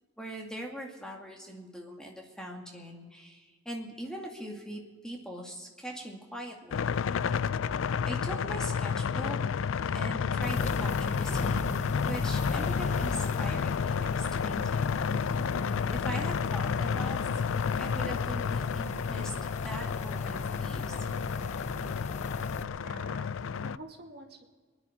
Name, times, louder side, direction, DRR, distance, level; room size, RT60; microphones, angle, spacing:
voice 1, 0.2-6.9 8.0-9.4 9.9-11.8 12.0-15.0 15.9-17.2 17.8-19.3 19.6-20.9, right 1 dB, 5° left, 0 dB, 2.2 m, -41 dB
sound 1, 6.7-23.8, left 6 dB, 80° left, 0.4 m, -31 dB
sound 2, 10.4-22.6, left 2 dB, 35° left, 0.6 m, -37 dB
voice 2, 22.8-24.5, right 2 dB, 55° right, 2 dB, 2.2 m, -48 dB
25.5 x 10.5 x 5.1 m, 1.4 s
head